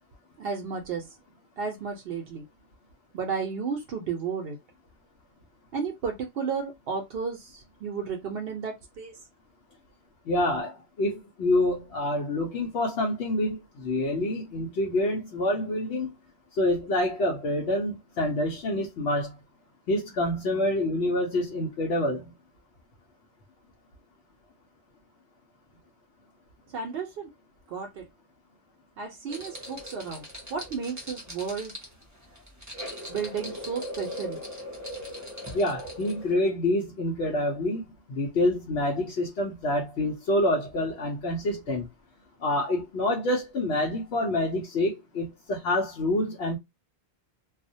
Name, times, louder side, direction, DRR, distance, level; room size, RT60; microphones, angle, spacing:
voice 1, 0.4-1.0 1.6-2.4 3.1-4.6 5.7-9.2 26.7-27.3 27.7-28.1 29.0-30.2 30.5-31.7 33.1-34.4, right 5 dB, 70° right, 0.8 m, -33 dB
voice 2, 10.3-16.1 16.6-19.3 19.9-22.2 35.5-37.8 38.1-41.9 42.4-46.6, left 1 dB, 85° left, 0.9 m, -27 dB
sound 1, 29.3-36.3, equal, 20° right, 0.6 m, -39 dB
2.4 x 2.1 x 2.6 m
omnidirectional pair, 1.1 m